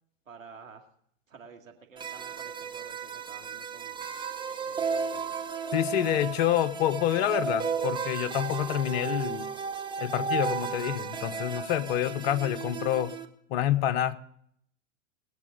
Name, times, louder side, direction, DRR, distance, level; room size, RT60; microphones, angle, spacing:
voice 1, 0.3-0.8 1.3-4.1 4.7-5.3, right 5 dB, 90° right, 3 dB, 2.4 m, -51 dB
sound 1, 2.0-13.3, right 5 dB, 10° right, 1.0 m, -34 dB
voice 2, 5.7-9.5 10.0-13.1 13.5-14.2, left 12 dB, 55° left, 9 dB, 1.0 m, -27 dB
21.0 x 8.0 x 5.0 m, 0.67 s
hypercardioid pair, 110°, 38 cm